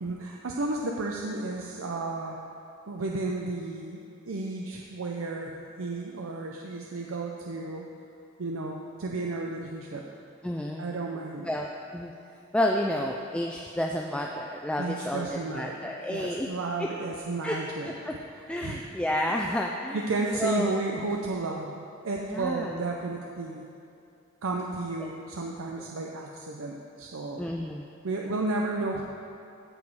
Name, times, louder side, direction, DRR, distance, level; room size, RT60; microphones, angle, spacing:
voice 1, 0.0-2.4 2.9-4.0 4.3-7.9 8.4-10.1 10.8-11.5 14.8-18.8 19.2-19.4 19.9-23.7 24.4-27.4 28.0-29.0, right 3 dB, 90° right, 0 dB, 0.6 m, -33 dB
voice 2, 10.4-10.9 11.5-12.1 12.5-16.5 16.8-16.9 17.4-17.6 17.9-18.2 18.5-20.1 20.3-20.7 22.3-22.8 27.4-27.9, left 1 dB, 5° left, 0 dB, 0.4 m, -30 dB
15.0 x 5.1 x 4.8 m, 2.5 s
head